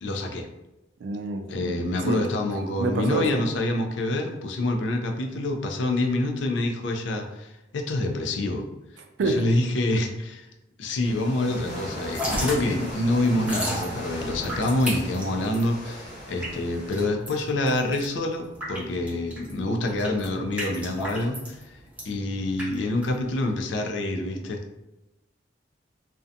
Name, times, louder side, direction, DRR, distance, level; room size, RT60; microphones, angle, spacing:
voice 1, 0.0-0.5 1.5-8.6 9.2-10.5 10.8-21.8 22.0-24.6, left 2 dB, 75° left, 4 dB, 0.4 m, -26 dB
voice 2, 1.0-1.7 2.1-2.2 2.8-3.4 9.2-9.4, right 3 dB, 75° right, 5 dB, 0.4 m, -26 dB
sound 1, 11.0-17.1, equal, 50° left, 1.2 m, -37 dB
Drip / Trickle dribble, 12.1-23.6, equal, 10° right, 0.7 m, -35 dB
2.6 x 2.1 x 2.5 m, 0.96 s
head